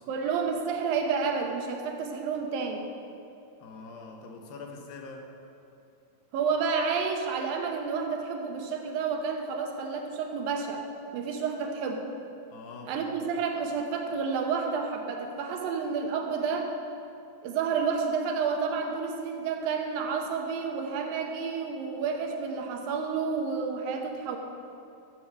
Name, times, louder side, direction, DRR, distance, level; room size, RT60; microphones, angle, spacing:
voice 1, 0.1-2.8 6.3-10.8 11.1-12.1 12.9-16.7 17.4-24.4, right 5 dB, 85° right, 3 dB, 2.7 m, -30 dB
voice 2, 3.6-5.3 12.5-13.3, left 3 dB, 85° left, 2 dB, 2.8 m, -44 dB
12.0 x 7.1 x 4.8 m, 2.7 s
omnidirectional pair, 4.1 m